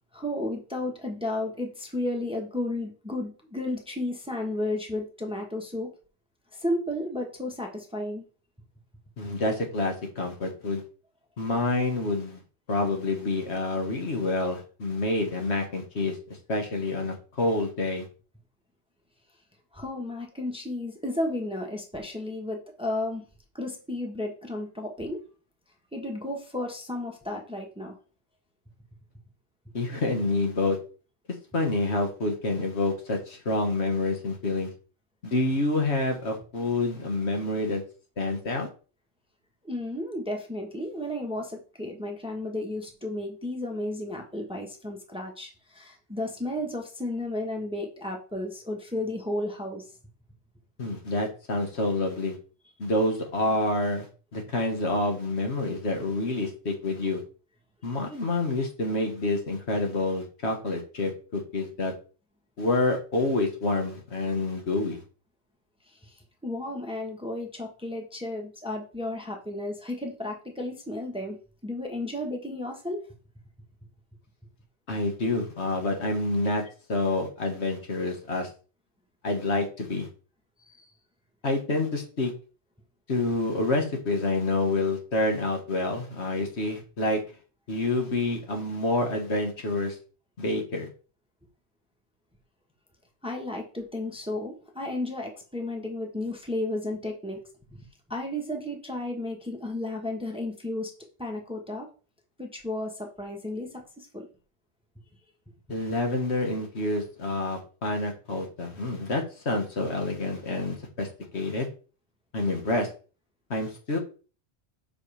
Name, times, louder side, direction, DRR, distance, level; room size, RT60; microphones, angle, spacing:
voice 1, 0.1-5.9 6.5-8.2 19.7-23.2 23.5-25.2 25.9-28.0 39.6-49.9 65.9-71.4 71.6-73.1 80.6-80.9 93.2-97.4 97.7-100.9 101.2-101.9 102.4-104.3, left 1 dB, 5° right, 2 dB, 1.2 m, -33 dB
voice 2, 9.2-10.8 11.4-12.4 12.7-16.2 16.5-18.1 29.7-30.8 31.5-34.7 35.2-37.8 38.2-38.7 50.8-52.4 52.8-57.2 57.8-61.9 62.6-65.0 74.9-76.6 76.9-78.5 79.2-80.1 81.4-82.3 83.1-87.2 87.7-90.0 90.4-90.9 105.7-111.1 111.3-111.7 112.3-112.9 113.5-114.0, left 2 dB, 70° left, 3 dB, 1.8 m, -28 dB
7.4 x 5.2 x 3.4 m, 0.36 s
omnidirectional pair, 1.2 m